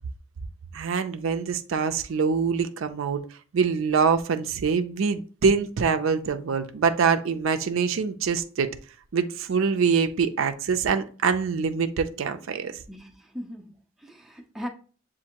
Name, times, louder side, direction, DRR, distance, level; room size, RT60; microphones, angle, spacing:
voice 1, 0.7-3.2 3.5-8.7 9.1-12.8, right 5 dB, 65° right, 0.4 m, -24 dB
voice 2, 12.9-14.7, equal, ahead, 0.5 m, -39 dB
7.2 x 2.5 x 2.9 m
head